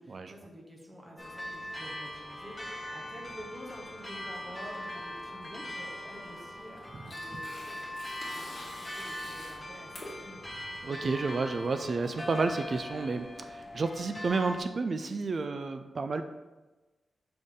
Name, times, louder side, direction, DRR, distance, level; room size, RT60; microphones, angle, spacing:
voice 1, 0.0-7.8 8.2-10.4, equal, 5° right, -2 dB, 1.2 m, -49 dB
sound 1, 1.2-14.6, left 1 dB, 10° left, 0.8 m, -41 dB
Tearing, 6.4-13.2, left 1 dB, 40° left, 1.9 m, -49 dB
voice 2, 10.8-16.2, right 4 dB, 45° right, 8 dB, 0.3 m, -31 dB
6.6 x 4.0 x 3.7 m, 1.2 s
wide cardioid pair, 145°, 0 cm